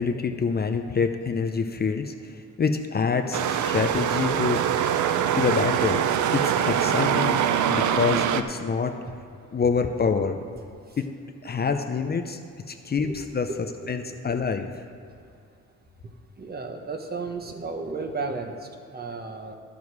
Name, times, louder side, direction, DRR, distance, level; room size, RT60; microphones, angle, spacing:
voice 1, 0.0-2.3 2.6-4.6 5.3-6.1 6.3-7.4 7.7-8.9 9.5-10.4 11.0-11.1 11.4-12.4 12.7-13.5 13.9-14.7, left 5 dB, 30° left, 6 dB, 0.6 m, -26 dB
sound 1, 3.3-8.4, right 9 dB, 75° right, 0.6 m, -23 dB
voice 2, 13.0-13.6 14.0-14.2 16.4-18.5 18.9-19.6, right 3 dB, 30° right, 5 dB, 1.1 m, -34 dB
11.5 x 7.3 x 4.7 m, 2.5 s
cardioid pair, 90°, 30 cm